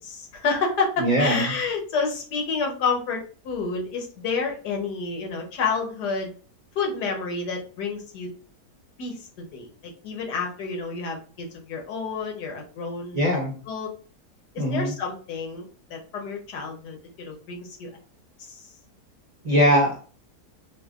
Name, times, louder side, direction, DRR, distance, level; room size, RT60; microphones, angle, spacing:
voice 1, 0.0-6.3 6.7-8.3 9.0-13.2 13.7-13.9 14.5-17.9 18.4-18.7, left 4 dB, 90° left, 1 dB, 1.6 m, -29 dB
voice 2, 1.0-1.5 13.1-13.5 14.6-14.9 19.4-20.0, equal, 35° right, -3 dB, 0.7 m, -21 dB
5.4 x 2.3 x 2.4 m, 0.39 s
omnidirectional pair, 1.7 m